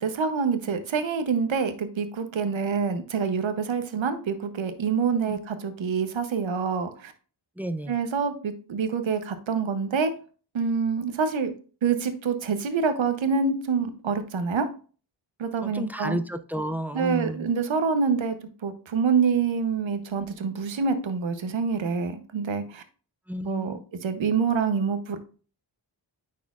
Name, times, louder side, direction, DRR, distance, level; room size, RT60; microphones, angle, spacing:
voice 1, 0.0-7.1 7.9-10.1 10.5-11.5 11.8-14.7 15.4-16.2 16.9-18.4 18.6-22.8 23.5-25.2, right 5 dB, 85° right, 9 dB, 0.8 m, -26 dB
voice 2, 7.6-8.0 15.6-17.5 23.3-23.8, right 1 dB, 5° right, 10 dB, 0.3 m, -31 dB
9.4 x 4.3 x 2.3 m, 0.38 s
wide cardioid pair, 70°, 46 cm